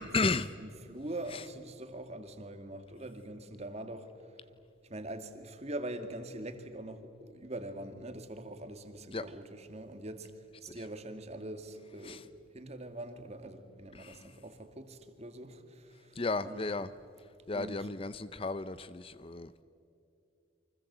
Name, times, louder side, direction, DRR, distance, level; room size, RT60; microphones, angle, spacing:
voice 1, 0.0-0.5 1.3-1.4 9.1-9.3 12.0-12.2 13.9-14.3 16.2-16.9 17.5-19.5, left 3 dB, 30° left, 0.6 m, -34 dB
voice 2, 0.6-4.1 4.8-10.3 10.6-12.2 12.5-16.6 17.5-17.9, right 1 dB, 35° right, 2.0 m, -43 dB
29.0 x 24.5 x 8.0 m
head